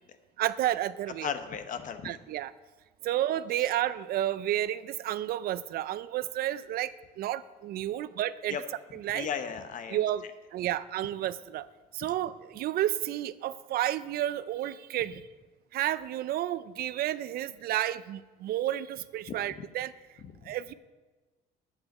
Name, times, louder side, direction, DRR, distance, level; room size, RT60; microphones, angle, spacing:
voice 1, 0.4-1.3 2.0-2.5 3.0-8.6 8.9-9.3 9.9-10.2 10.5-11.7 11.9-15.2 15.7-19.9 20.4-20.7, right 13 dB, 65° right, 16 dB, 0.4 m, -31 dB
voice 2, 1.2-2.2 8.5-8.6 9.1-10.0 19.6-19.7 20.2-20.5, left 7 dB, 50° left, 9 dB, 0.9 m, -35 dB
8.7 x 8.5 x 6.2 m, 1.3 s
cardioid pair, 110°, 17 cm